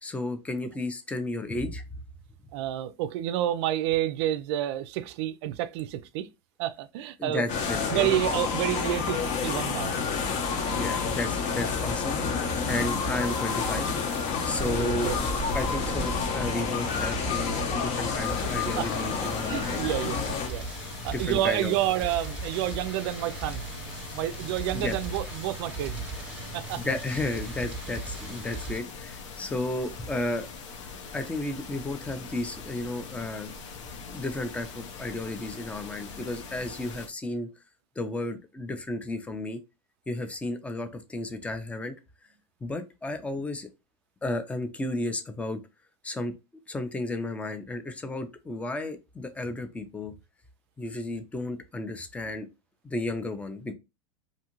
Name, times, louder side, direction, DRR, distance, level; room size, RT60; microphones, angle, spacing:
voice 1, 0.0-1.8 7.2-8.1 10.7-12.2 12.7-13.9 14.4-15.1 15.5-19.8 21.0-21.7 24.7-25.0 26.8-30.5 31.1-33.5 34.1-37.5 38.0-39.6 40.1-41.9 42.6-43.7 44.2-45.6 46.0-46.3 46.7-50.1 50.8-52.5 52.8-53.7, left 2 dB, 10° left, 0.4 m, -33 dB
voice 2, 2.5-6.3 6.6-7.4 7.9-9.9 14.8-15.2 18.8-18.9 19.4-20.2 20.5-20.7 21.0-23.7 24.1-26.1 26.5-26.8, right 13 dB, 60° right, 0.4 m, -29 dB
sound 1, 7.5-20.5, left 5 dB, 45° left, 0.7 m, -29 dB
sound 2, 12.7-28.8, right 3 dB, 5° right, 0.9 m, -38 dB
sound 3, 18.2-37.1, left 5 dB, 80° left, 0.7 m, -42 dB
2.6 x 2.4 x 2.9 m
supercardioid pair, 125°, 15 cm